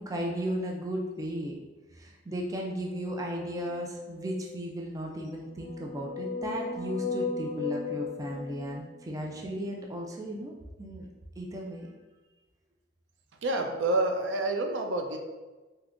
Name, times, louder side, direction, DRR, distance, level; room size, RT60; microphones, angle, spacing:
voice 1, 0.0-1.6 1.9-10.5 10.8-11.1 11.4-12.0, equal, 20° right, -1 dB, 0.3 m, -35 dB
sound 1, 2.9-4.6 5.4-9.3, left 4 dB, 30° left, 0.8 m, -37 dB
voice 2, 13.4-15.2, right 2 dB, 80° right, 4 dB, 0.4 m, -28 dB
3.5 x 2.7 x 2.5 m, 1.2 s
head